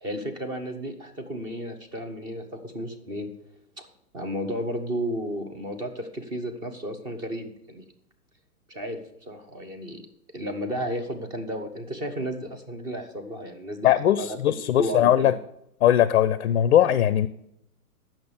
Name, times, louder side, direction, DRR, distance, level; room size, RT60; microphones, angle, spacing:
voice 1, 0.0-3.3 4.1-7.9 8.7-10.0 10.3-15.4, equal, 10° right, 5 dB, 0.5 m, -33 dB
voice 2, 13.8-15.3 15.8-17.3, left 11 dB, 50° left, 16 dB, 0.5 m, -20 dB
8.6 x 6.2 x 6.7 m, 0.77 s
figure-of-eight pair, 120°, 46 cm